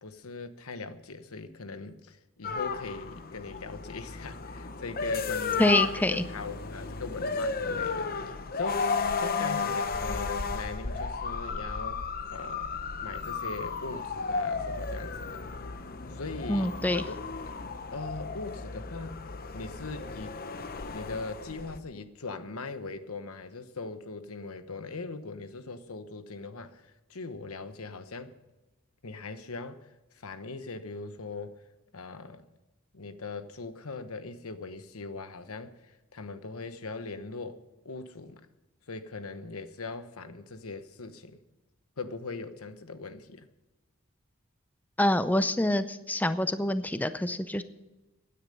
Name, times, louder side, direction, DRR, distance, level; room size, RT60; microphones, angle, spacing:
voice 1, 0.0-12.0 12.3-15.4 16.1-17.2 17.5-17.6 17.9-19.3 19.5-20.4 20.9-28.3 29.0-29.9 30.1-31.6 31.9-32.4 32.9-38.4 38.9-41.4 42.0-43.5, left 3 dB, 90° left, 11 dB, 1.1 m, -40 dB
sound 1, 2.4-21.8, left 4 dB, 45° left, 0.8 m, -34 dB
voice 2, 5.6-6.2 16.5-17.0 45.0-47.6, left 1 dB, 10° left, 11 dB, 0.5 m, -26 dB
16.0 x 10.0 x 5.4 m, 1.1 s
head